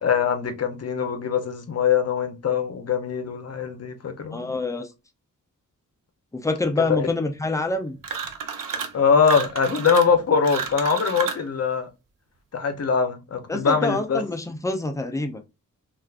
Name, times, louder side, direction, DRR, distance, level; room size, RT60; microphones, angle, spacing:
voice 1, 0.0-4.5 7.0-7.1 8.9-11.9 12.5-14.2, left 6 dB, 50° left, 0.6 m, -22 dB
voice 2, 4.3-4.9 6.4-8.0 13.5-15.4, left 2 dB, 10° left, 0.4 m, -26 dB
sound 1, 8.0-9.0 9.2-11.5, right 6 dB, 75° right, 0.6 m, -31 dB
3.4 x 2.4 x 2.3 m
wide cardioid pair, 150°, 33 cm